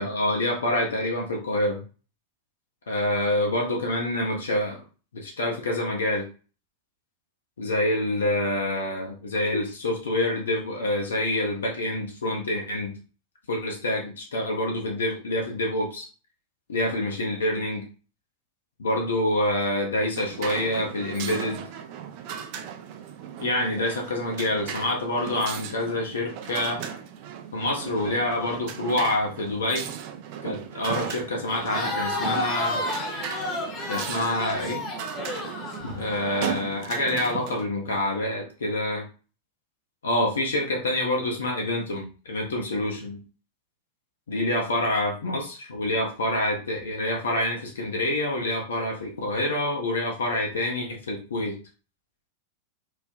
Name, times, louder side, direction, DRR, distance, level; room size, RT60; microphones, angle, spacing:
voice 1, 0.0-1.8 2.9-4.8 5.1-6.3 7.6-12.9 13.5-16.1 16.7-17.9 18.8-21.6 23.4-26.8 27.5-29.9 30.4-32.8 33.9-34.8 35.9-39.1 40.0-43.2 44.3-51.6, left 1 dB, 70° left, 0 dB, 0.6 m, -27 dB
sound 1, 20.2-37.7, right 8 dB, 45° right, 0.3 m, -37 dB
Crowd, 31.5-36.5, left 2 dB, 25° left, 0.7 m, -31 dB
3.1 x 2.0 x 2.4 m, 0.36 s
figure-of-eight pair, 90°, 0 cm